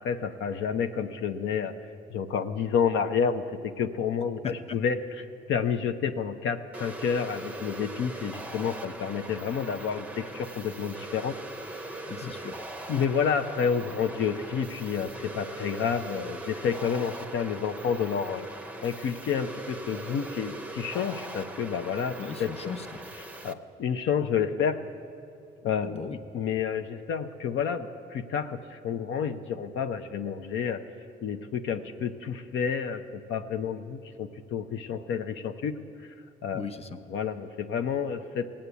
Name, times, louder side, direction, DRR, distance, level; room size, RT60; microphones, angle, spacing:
voice 1, 0.0-1.8 2.1-5.0 5.5-11.4 11.9-12.3 12.9-18.5 18.8-22.5 23.4-24.8 25.6-26.0 26.3-30.8 31.2-35.8 36.4-36.6 37.1-38.5, left 7 dB, 80° left, 7 dB, 0.7 m, -29 dB
voice 2, 4.4-4.8 12.1-12.6 22.2-23.0 25.8-26.2 36.5-37.0, left 6 dB, 30° left, 8 dB, 0.8 m, -37 dB
sound 1, 6.7-23.5, right 2 dB, 5° right, 0.7 m, -40 dB
17.0 x 8.8 x 8.2 m, 2.6 s
cardioid pair, 90°, 20 cm